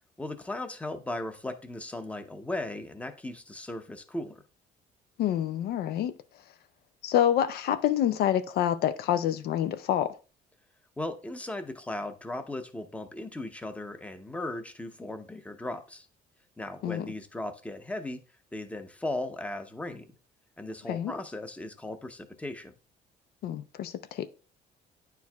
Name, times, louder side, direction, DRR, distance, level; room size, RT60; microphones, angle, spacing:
voice 1, 0.2-4.4 11.0-16.1 16.6-18.2 18.5-20.0 20.6-22.7, left 2 dB, 10° left, 0.7 m, -37 dB
voice 2, 5.2-6.1 7.0-10.2 16.8-17.1 20.9-21.1 23.4-24.3, left 10 dB, 70° left, 0.4 m, -27 dB
9.4 x 4.6 x 2.3 m
cardioid pair, 110°, 17 cm